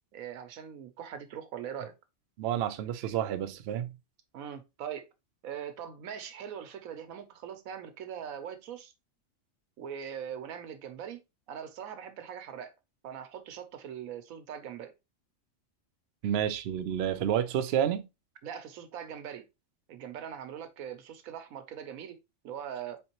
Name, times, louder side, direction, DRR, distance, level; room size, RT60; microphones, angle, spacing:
voice 1, 0.1-1.9 4.3-5.1 5.4-8.9 9.8-11.2 11.5-12.7 13.0-14.9 18.4-19.4 19.9-22.2 22.4-23.0, right 8 dB, 90° right, 1.1 m, -41 dB
voice 2, 2.4-3.9 16.2-18.1, right 10 dB, 65° right, 0.7 m, -29 dB
4.3 x 3.5 x 2.9 m
omnidirectional pair, 1.4 m